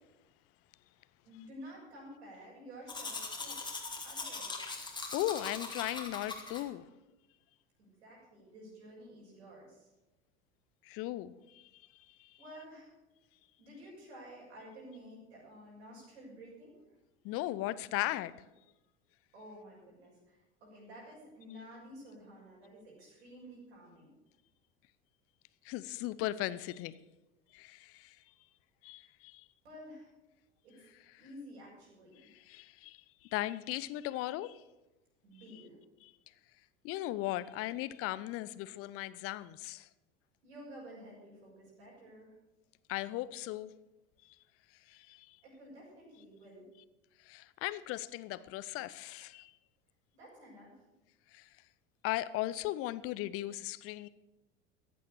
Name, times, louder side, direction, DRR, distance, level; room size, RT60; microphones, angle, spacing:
voice 1, 1.2-3.6 4.0-4.7 7.8-9.9 12.4-12.9 13.6-16.8 19.3-24.1 29.6-30.1 30.6-30.8 31.2-32.2 35.2-35.8 40.4-42.3 45.4-46.7 50.1-50.8, equal, 70° right, 6.7 m, -51 dB
Domestic sounds home sounds, 2.9-6.6, left 3 dB, 10° left, 2.3 m, -41 dB
voice 2, 5.1-6.9 10.8-11.6 12.2-12.3 17.2-18.3 25.6-26.9 27.5-28.2 28.8-29.4 32.5-33.0 33.3-34.6 36.8-39.9 42.9-43.7 44.9-45.4 47.3-49.5 51.3-51.5 52.0-54.1, left 15 dB, 40° left, 0.7 m, -37 dB
14.5 x 9.5 x 6.7 m
figure-of-eight pair, 75°, 35 cm